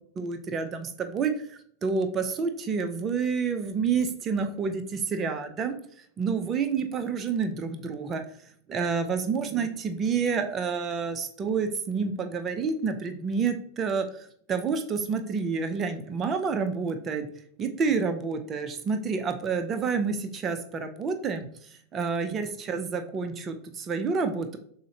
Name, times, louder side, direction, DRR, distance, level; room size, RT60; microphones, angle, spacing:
voice 1, 0.2-5.8 6.2-8.2 8.7-14.1 14.5-17.3 17.6-21.5 21.9-24.6, right 5 dB, 25° right, 8 dB, 0.5 m, -29 dB
6.2 x 2.1 x 2.8 m, 0.63 s
figure-of-eight pair, 90°, 0 cm